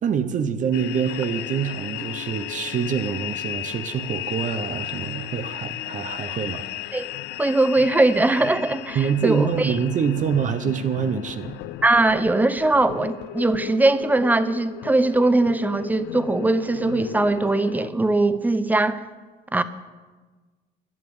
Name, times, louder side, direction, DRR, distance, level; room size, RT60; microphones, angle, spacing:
voice 1, 0.0-6.7 8.9-11.6, right 7 dB, 50° right, 9 dB, 0.8 m, -25 dB
sound 1, 0.7-17.9, left 15 dB, 85° left, 0.4 m, -35 dB
voice 2, 7.4-9.8 11.8-19.0 19.5-19.6, right 2 dB, 10° right, 13 dB, 0.7 m, -20 dB
11.0 x 10.0 x 7.9 m, 1.3 s
cardioid pair, 110°, 17 cm